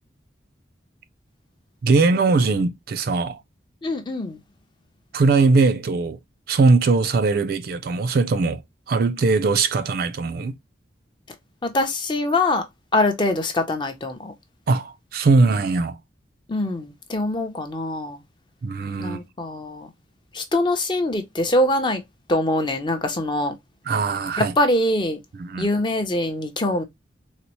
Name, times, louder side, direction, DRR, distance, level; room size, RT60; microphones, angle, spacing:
voice 1, 1.8-3.4 5.1-6.2 6.5-8.6 8.9-10.5 14.7-16.0 18.6-19.2 23.9-24.5 25.4-25.7, right 3 dB, 50° right, 0.3 m, -20 dB
voice 2, 3.8-4.4 11.6-12.6 12.9-14.3 16.5-18.2 19.0-19.9 20.3-22.0 22.3-23.5 24.4-25.2 25.6-26.8, left 1 dB, 25° left, 0.5 m, -23 dB
4.1 x 2.0 x 2.9 m
head